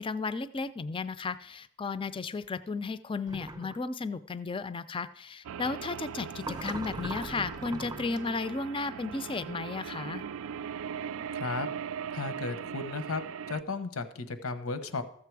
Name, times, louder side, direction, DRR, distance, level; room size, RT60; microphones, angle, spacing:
voice 1, 0.0-10.2, left 4 dB, 25° left, 13 dB, 0.4 m, -34 dB
sound 1, 3.3-3.8 6.4-8.2, right 2 dB, 20° right, 0.6 m, -40 dB
sound 2, 5.4-13.6, right 7 dB, 75° right, 0.3 m, -39 dB
voice 2, 11.3-11.7 12.1-13.2 13.5-15.0, left 3 dB, 85° left, 10 dB, 1.0 m, -34 dB
13.5 x 7.6 x 4.7 m, 0.69 s
head